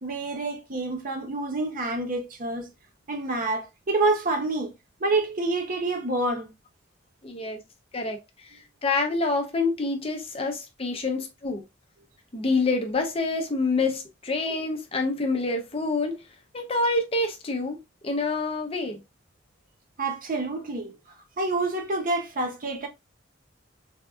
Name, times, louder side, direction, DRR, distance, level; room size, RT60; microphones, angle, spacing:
voice 1, 0.0-2.7 3.1-4.7 5.0-6.5 20.0-20.9 21.4-22.9, right 2 dB, 50° right, 0.7 m, -27 dB
voice 2, 7.2-7.6 7.9-11.6 12.3-16.2 16.5-19.0, left 3 dB, 30° left, 0.6 m, -27 dB
3.4 x 2.6 x 2.3 m
head